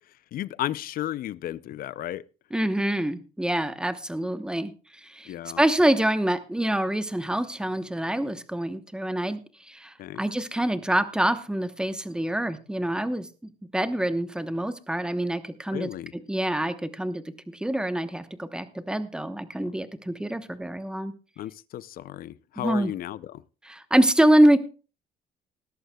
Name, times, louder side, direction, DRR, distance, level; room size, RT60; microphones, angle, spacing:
voice 1, 0.3-2.2 5.3-5.6 10.0-10.2 15.7-16.1 19.6-19.7 21.4-23.4, left 13 dB, 60° left, 0.5 m, -34 dB
voice 2, 2.5-4.7 5.0-13.3 13.7-15.9 16.3-21.1 22.6-22.9 23.7-24.6, right 1 dB, 5° right, 1.0 m, -25 dB
20.0 x 11.5 x 2.3 m
cardioid pair, 110°, 17 cm